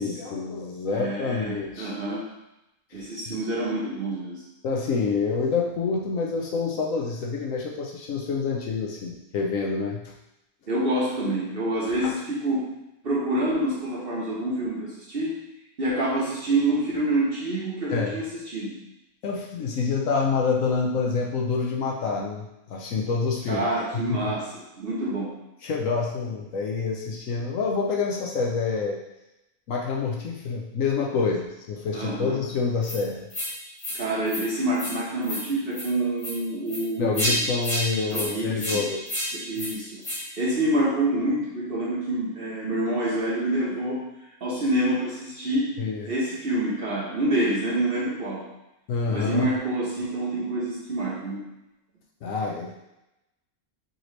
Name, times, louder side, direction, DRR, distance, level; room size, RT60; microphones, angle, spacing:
voice 1, 0.0-1.9 2.9-3.3 4.6-10.0 12.0-12.1 17.9-18.2 19.2-23.7 23.9-24.3 25.6-29.0 29.7-33.2 37.0-39.0 39.6-39.7 45.8-46.1 48.9-49.5 52.2-52.7, left 4 dB, 65° left, -1 dB, 1.0 m, -27 dB
voice 2, 0.9-2.3 2.9-4.4 10.7-12.7 13.0-15.3 15.8-18.8 23.5-25.4 31.9-32.4 33.9-37.5 38.1-38.8 39.3-44.0 44.4-45.7 46.1-48.5 49.1-51.4, right 1 dB, 45° right, -6 dB, 1.1 m, -27 dB
sound 1, 32.8-33.0 33.3-33.5 33.8-34.0 34.3-34.4 34.7-34.9 35.2-35.4 35.7-35.9 36.2-36.3 36.7-36.8 37.1-37.3 37.6-37.8 38.1-38.3 38.6-38.8 39.1-39.3 39.6-39.7 40.0-40.2, equal, 50° left, 1.8 m, -29 dB
4.8 x 3.0 x 3.2 m, 0.91 s
omnidirectional pair, 1.6 m